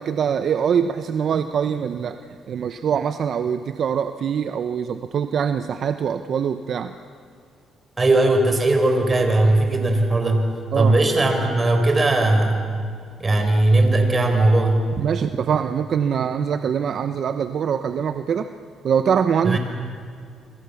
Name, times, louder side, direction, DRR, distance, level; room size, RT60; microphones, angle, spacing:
voice 1, 0.0-2.2 2.5-6.9 10.7-10.9 15.0-18.5 18.8-19.6, right 7 dB, 60° right, 9 dB, 0.9 m, -23 dB
voice 2, 8.0-10.5 10.7-12.6 13.2-14.9 19.4-19.6, right 2 dB, 25° right, 5 dB, 5.2 m, -18 dB
28.5 x 25.5 x 7.2 m, 2.2 s
cardioid pair, 90°, 0 cm